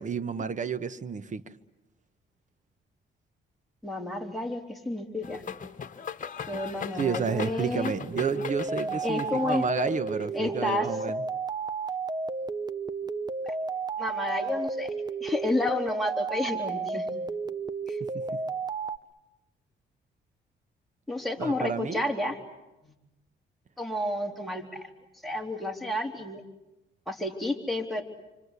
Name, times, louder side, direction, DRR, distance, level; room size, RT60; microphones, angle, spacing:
voice 1, 0.0-1.5 7.0-11.2 18.0-18.2 21.4-22.0, right 6 dB, 40° right, 1.3 m, -31 dB
voice 2, 3.8-5.4 6.5-7.9 9.0-9.6 10.3-10.9 13.4-13.5 14.0-14.9 15.2-17.1 17.9-18.0 21.1-22.4 23.8-24.9 25.2-26.4 27.1-28.0, left 2 dB, ahead, 3.7 m, -30 dB
sound 1, 5.2-10.2, left 7 dB, 40° left, 1.6 m, -39 dB
sound 2, 8.1-19.0, right 4 dB, 20° right, 1.0 m, -32 dB
28.0 x 25.5 x 8.3 m
cardioid pair, 90°, 20 cm